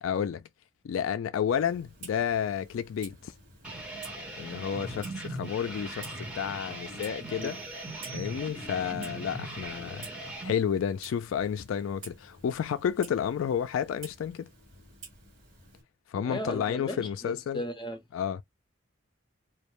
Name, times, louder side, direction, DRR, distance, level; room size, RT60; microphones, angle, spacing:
voice 1, 0.0-0.4 0.8-3.3 4.4-7.6 8.1-10.1 10.4-14.5 16.1-17.6 18.1-18.4, left 8 dB, 80° left, 0.3 m, -31 dB
Clock, 1.5-15.8, right 3 dB, 40° right, 1.4 m, -51 dB
sound 1, 3.6-10.5, right 1 dB, 5° right, 0.9 m, -39 dB
sound 2, 7.4-8.9, right 9 dB, 70° right, 0.5 m, -50 dB
voice 2, 16.1-18.0, left 1 dB, 25° left, 0.6 m, -36 dB
2.3 x 2.1 x 2.9 m
head